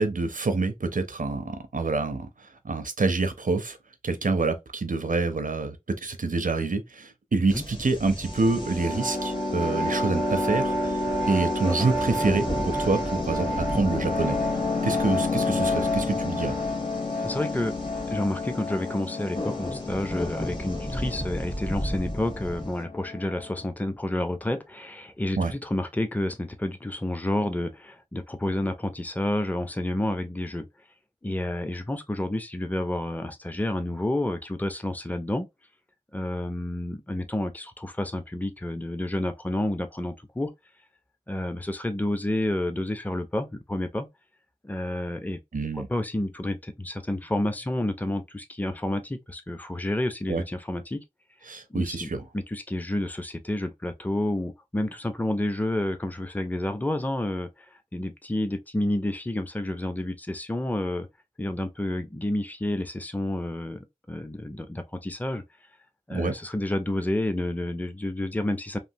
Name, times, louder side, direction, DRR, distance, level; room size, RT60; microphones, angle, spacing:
voice 1, 0.0-3.8 4.0-11.0 11.3-14.4 14.8-16.6 25.4-25.5 45.5-45.9 50.3-50.4 51.5-52.2 66.1-66.4, right 3 dB, 75° right, 0.5 m, -27 dB
sound 1, 7.5-22.8, equal, 35° left, 1.1 m, -36 dB
sound 2, 8.2-23.7, left 2 dB, 70° left, 0.9 m, -29 dB
voice 2, 17.2-17.8 18.1-30.7 31.2-35.5 36.1-40.5 41.3-44.1 44.6-45.4 45.7-51.0 51.7-52.1 52.3-57.5 57.9-61.1 61.4-65.4 66.1-68.8, left 1 dB, 10° left, 0.5 m, -30 dB
3.2 x 2.4 x 2.7 m
wide cardioid pair, 40°, 14 cm